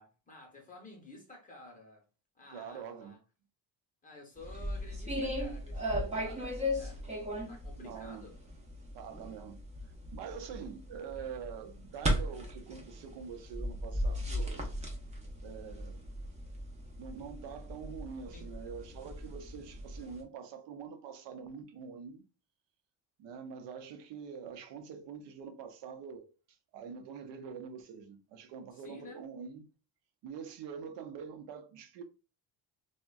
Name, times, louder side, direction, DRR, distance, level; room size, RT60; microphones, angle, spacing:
voice 1, 0.0-2.0 2.3-3.2 4.0-7.1 7.5-8.4 18.3-18.5 28.7-29.2, left 2 dB, 20° left, 0.7 m, -52 dB
voice 2, 2.5-3.2 7.8-8.3 8.9-9.6 10.1-14.6 15.4-16.0 17.0-22.2 23.2-26.3 26.7-29.7 30.2-32.0, right 6 dB, 70° right, 0.6 m, -45 dB
sound 1, 4.4-20.2, equal, 15° right, 0.5 m, -37 dB
3.5 x 2.1 x 2.3 m
cardioid pair, 160°, 44 cm